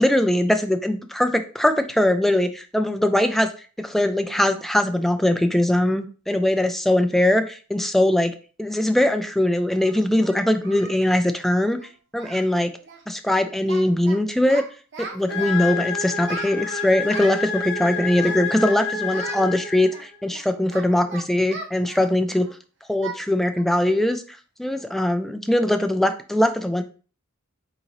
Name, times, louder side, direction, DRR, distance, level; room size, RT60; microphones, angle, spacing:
voice 1, 0.0-3.5 3.8-8.3 8.6-11.8 12.1-12.7 13.1-14.6 15.0-22.5 22.9-26.8, left 1 dB, ahead, 8 dB, 0.3 m, -21 dB
Singing, 9.0-9.1 9.8-11.0 11.3-11.5 11.8-11.9 12.2-12.5 12.8-13.0 13.3-14.2 14.5-15.8 16.2-17.5 18.1-18.8 19.1-19.4 19.9-22.5 23.0-23.2 23.6-23.7 24.2-24.3 24.7-25.0, right 4 dB, 55° right, 0.7 m, -38 dB
sound 1, 15.3-20.2, left 5 dB, 55° left, 1.0 m, -29 dB
4.0 x 3.8 x 3.0 m, 0.38 s
head